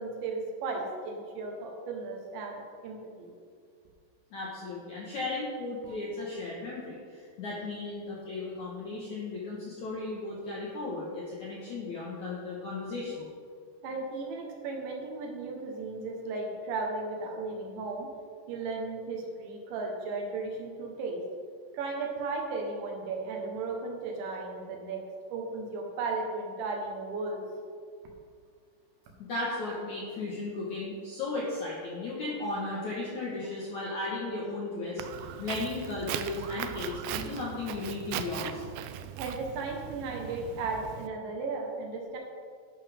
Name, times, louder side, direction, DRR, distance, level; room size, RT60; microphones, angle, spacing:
voice 1, 0.0-3.3 5.8-6.0 13.8-18.1 18.5-21.2 21.7-25.0 25.3-27.4 32.7-32.8 39.2-42.2, right 3 dB, 70° right, 1 dB, 3.5 m, -35 dB
voice 2, 4.3-13.3 29.2-38.6, left 2 dB, 65° left, -6 dB, 1.9 m, -35 dB
Walk footsteps, 35.0-41.1, right 10 dB, 90° right, 2.5 m, -39 dB
11.5 x 11.0 x 3.6 m, 2.1 s
omnidirectional pair, 5.6 m